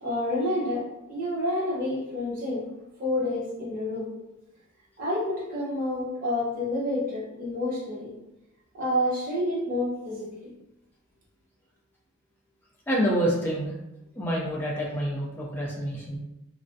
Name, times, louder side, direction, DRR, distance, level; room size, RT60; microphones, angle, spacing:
voice 1, 0.0-2.7 3.0-4.1 5.0-8.1 8.8-10.5, left 1 dB, 40° right, -6 dB, 0.8 m, -29 dB
voice 2, 12.9-13.7 14.2-16.2, equal, 10° left, -4 dB, 0.4 m, -27 dB
2.3 x 2.1 x 2.6 m, 0.92 s
head